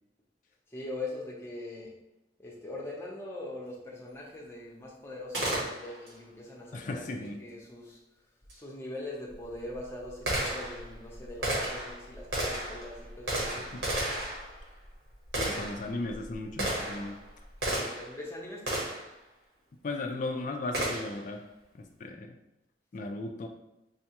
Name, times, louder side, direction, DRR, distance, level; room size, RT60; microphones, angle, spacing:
voice 1, 0.7-1.9 2.4-8.0 8.5-13.7 17.8-18.9, left 2 dB, 15° left, -3 dB, 0.7 m, -42 dB
Gunshot gunfire, 5.3-6.2 8.5-8.6 9.3-18.2 18.7-19.1 20.7-21.3, right 1 dB, 75° right, 1.3 m, -33 dB
voice 2, 6.7-7.4 13.6-13.8 15.4-17.2 19.8-21.4 21.7-22.4 22.9-23.5, left 2 dB, 45° left, 3 dB, 0.3 m, -36 dB
5.4 x 2.3 x 2.9 m, 0.90 s
head